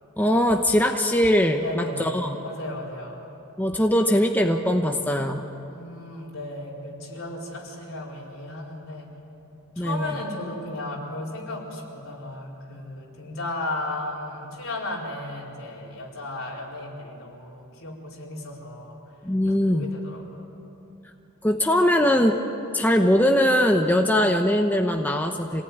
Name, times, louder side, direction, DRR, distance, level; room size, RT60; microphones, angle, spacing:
voice 1, 0.2-2.3 3.6-5.4 9.8-10.1 19.2-19.9 21.4-22.4 22.7-25.6, equal, 10° left, 3 dB, 0.9 m, -21 dB
voice 2, 1.6-3.2 5.7-9.1 9.8-19.0 19.5-20.5, left 1 dB, 65° left, -3 dB, 4.5 m, -35 dB
26.5 x 18.5 x 9.4 m, 3.0 s
head